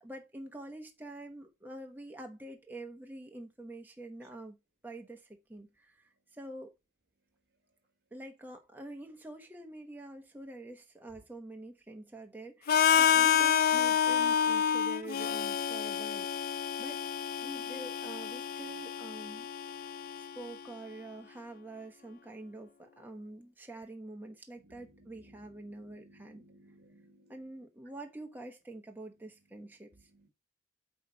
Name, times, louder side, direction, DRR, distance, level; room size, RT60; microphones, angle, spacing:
voice 1, 0.0-4.6 4.8-6.7 8.1-16.3 16.8-17.0 17.4-19.5 19.8-19.9 20.2-26.4 27.3-30.1, right 1 dB, 10° right, 1.1 m, -46 dB
Harmonica, 12.7-20.6, left 8 dB, 55° left, 0.4 m, -29 dB
voice 2, 24.6-27.3 29.9-30.3, right 1 dB, 60° right, 1.4 m, -60 dB
9.3 x 3.2 x 5.5 m
head